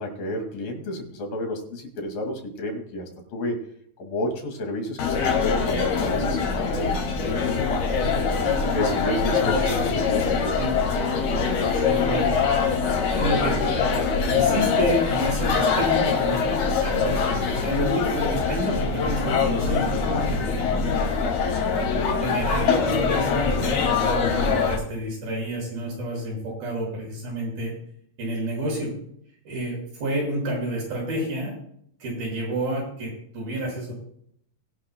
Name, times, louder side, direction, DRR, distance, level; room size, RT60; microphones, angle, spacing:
voice 1, 0.0-3.6 4.0-8.2 8.7-10.7 20.7-20.9, left 1 dB, 70° left, 3 dB, 4.0 m, -31 dB
sound 1, 5.0-24.8, left 5 dB, 85° left, 4.3 m, -23 dB
voice 2, 9.4-9.9 10.5-10.7 11.7-12.3 13.2-13.6 14.3-21.2 21.7-21.9 22.2-27.7 28.2-28.9 29.5-31.5 32.0-33.9, right 1 dB, 80° right, -2 dB, 8.0 m, -30 dB
21.5 x 11.5 x 2.3 m, 0.66 s
omnidirectional pair, 4.3 m